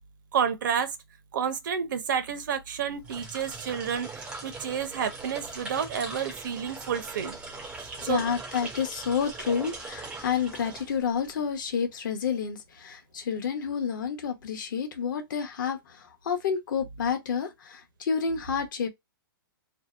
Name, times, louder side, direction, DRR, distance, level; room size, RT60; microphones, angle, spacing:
voice 1, 0.3-0.9 1.3-7.4 7.8-8.2, right 7 dB, 55° right, 0.6 m, -30 dB
sound 1, 2.9-11.4, right 3 dB, 10° right, 0.4 m, -41 dB
voice 2, 7.9-18.9, left 6 dB, 55° left, 0.7 m, -29 dB
2.7 x 2.0 x 2.2 m
hypercardioid pair, 165°, 12 cm